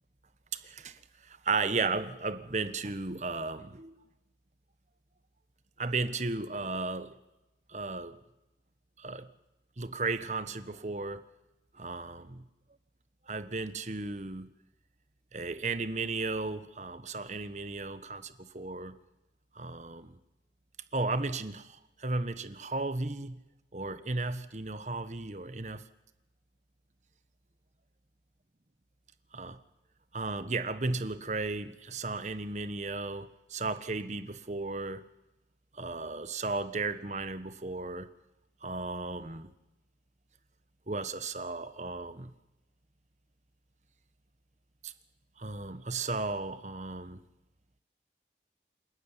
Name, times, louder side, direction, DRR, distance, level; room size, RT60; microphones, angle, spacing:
voice 1, 0.5-3.9 5.8-7.1 7.7-8.2 9.0-9.3 9.8-11.2 11.7-12.4 13.3-14.5 15.3-19.0 19.5-20.2 20.9-23.4 23.7-25.8 29.3-29.6 30.1-35.0 35.7-38.1 38.6-39.5 40.9-42.3 44.8-44.9 45.4-47.2, right 3 dB, 40° right, 12 dB, 1.3 m, -35 dB
28.0 x 13.0 x 10.0 m, 0.96 s
head